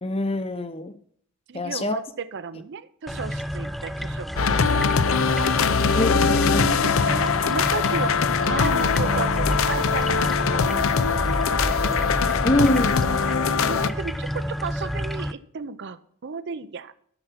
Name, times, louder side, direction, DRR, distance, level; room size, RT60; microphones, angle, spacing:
voice 1, 0.0-0.9 1.5-2.0 6.0-6.8 12.4-13.1, left 1 dB, 25° left, 11 dB, 0.7 m, -25 dB
voice 2, 1.5-4.9 5.3-5.9 6.6-12.1 13.7-16.9, right 5 dB, 55° right, 14 dB, 0.5 m, -34 dB
sound 1, 3.1-15.3, equal, ahead, 0.3 m, -29 dB
sound 2, 4.4-13.9, left 5 dB, 70° left, 0.6 m, -22 dB
12.0 x 7.0 x 5.8 m, 0.63 s
head